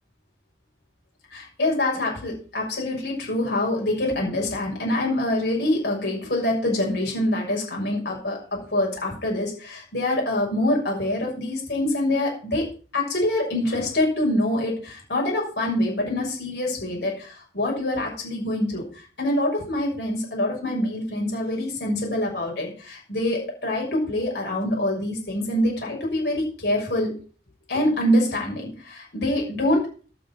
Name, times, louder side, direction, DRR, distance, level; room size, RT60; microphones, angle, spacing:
voice 1, 1.3-12.7 12.9-27.1 27.7-29.9, left 1 dB, 70° left, -2 dB, 6.7 m, -25 dB
12.0 x 7.0 x 6.4 m, 0.38 s
head